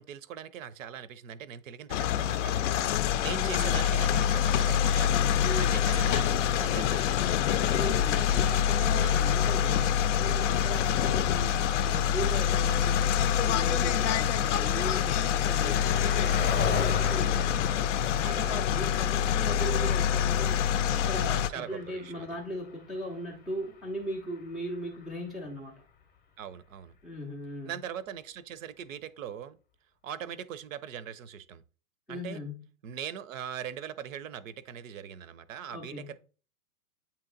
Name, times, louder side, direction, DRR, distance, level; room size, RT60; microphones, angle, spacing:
voice 1, 0.0-2.8 3.2-5.1 5.6-7.7 9.0-9.2 18.2-18.5 21.5-22.3 26.4-26.9 27.6-29.6 30.0-31.6 32.1-32.4 32.8-36.1, right 9 dB, 60° right, 0.6 m, -41 dB
sound 1, 1.9-21.5, left 9 dB, 55° left, 0.5 m, -26 dB
voice 2, 3.3-3.9 5.4-5.9 7.7-17.6 18.1-25.7 27.0-27.8 32.1-32.6 35.7-36.1, equal, ahead, 0.4 m, -38 dB
Car passing by, 13.6-25.3, left 6 dB, 20° left, 0.7 m, -40 dB
8.5 x 2.9 x 3.8 m
hypercardioid pair, 135°, 45 cm